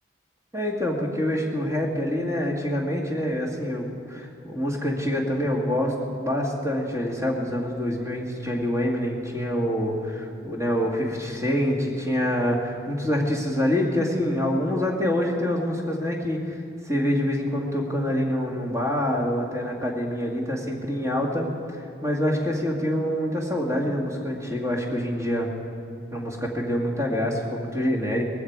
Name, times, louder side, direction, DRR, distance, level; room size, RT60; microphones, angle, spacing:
voice 1, 0.5-16.6 16.8-25.5 26.1-28.2, equal, 15° right, -1 dB, 2.0 m, -26 dB
19.5 x 15.5 x 4.8 m, 2.5 s
head